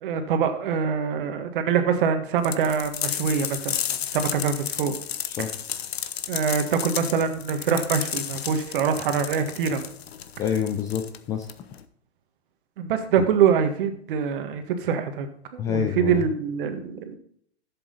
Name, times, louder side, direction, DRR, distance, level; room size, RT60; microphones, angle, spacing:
voice 1, 0.0-3.8 4.1-5.0 6.3-9.8 12.8-15.3 15.5-17.2, right 6 dB, 50° right, 7 dB, 1.7 m, -24 dB
sound 1, 2.4-11.8, left 9 dB, 65° left, 1.0 m, -32 dB
voice 2, 10.4-11.5 13.2-13.3 15.6-16.2, left 8 dB, 10° left, 6 dB, 0.3 m, -27 dB
11.0 x 7.8 x 4.0 m, 0.63 s
hypercardioid pair, 120°, 33 cm